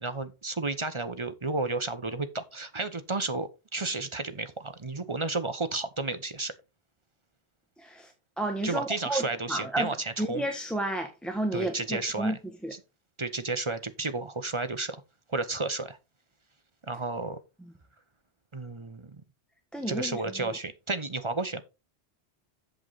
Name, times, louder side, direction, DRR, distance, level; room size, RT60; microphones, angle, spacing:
voice 1, 0.0-6.5 8.6-10.4 11.5-12.4 13.2-15.0 15.3-16.0 16.9-17.4 18.5-19.2 19.9-21.6, right 3 dB, 30° right, 0.9 m, -32 dB
voice 2, 7.8-8.1 8.4-9.2 9.5-9.9 10.2-12.4 12.6-12.7 19.7-20.5, right 1 dB, ahead, 1.3 m, -31 dB
8.1 x 7.6 x 4.0 m
omnidirectional pair, 1.2 m